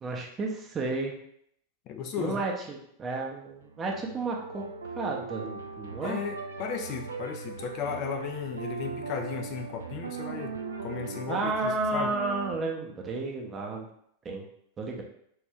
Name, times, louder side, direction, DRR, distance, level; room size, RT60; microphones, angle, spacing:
voice 1, 0.0-1.1 2.2-4.6 5.0-6.2 11.3-13.9 14.2-14.5 14.8-15.0, right 3 dB, 20° right, 0 dB, 0.6 m, -32 dB
voice 2, 1.9-2.4 6.0-10.5 10.8-12.1, left 6 dB, 40° left, 5 dB, 0.3 m, -35 dB
sound 1, 3.5-12.6, right 4 dB, 70° right, 0.3 m, -39 dB
2.7 x 2.5 x 3.3 m, 0.70 s
figure-of-eight pair, 90°, 0 cm